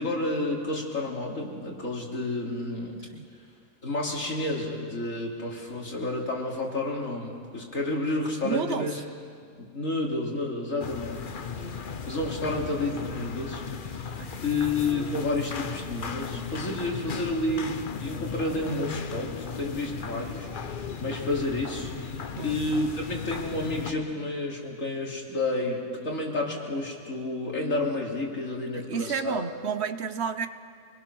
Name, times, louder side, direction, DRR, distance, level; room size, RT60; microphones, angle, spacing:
voice 1, 0.0-2.9 3.8-9.0 9.6-11.7 12.1-13.6 13.9-14.1 14.4-22.1 22.4-29.4, left 2 dB, 65° left, -2 dB, 3.4 m, -30 dB
voice 2, 8.4-8.9 14.2-14.4 22.4-22.6 28.7-30.5, right 6 dB, 55° right, 11 dB, 1.0 m, -31 dB
sound 1, 10.8-23.9, left 6 dB, 40° left, 0.9 m, -36 dB
26.0 x 20.5 x 6.2 m, 2.2 s
omnidirectional pair, 1.5 m